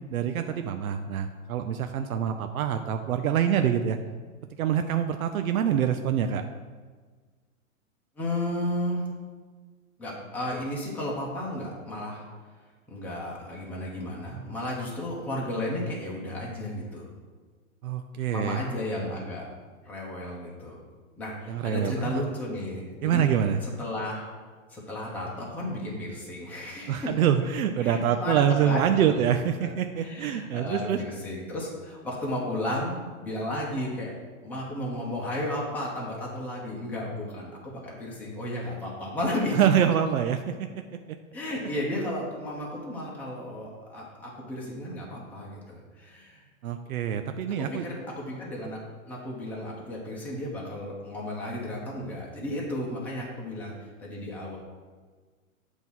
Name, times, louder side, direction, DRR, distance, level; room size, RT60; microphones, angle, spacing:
voice 1, 0.1-4.0 4.6-6.4 17.8-18.6 21.5-22.2 23.0-23.6 26.9-31.0 39.5-40.7 41.1-41.2 46.6-47.9, right 9 dB, 90° right, 7 dB, 0.6 m, -25 dB
voice 2, 8.2-9.0 10.0-12.3 12.9-17.1 18.3-19.4 19.8-20.8 21.2-23.2 23.6-24.3 24.7-27.1 27.8-29.4 29.6-34.1 34.4-39.8 41.3-46.4 47.6-48.8 49.1-54.6, left 1 dB, 5° left, -5 dB, 0.8 m, -33 dB
8.0 x 3.1 x 5.4 m, 1.5 s
hypercardioid pair, 145°, 42 cm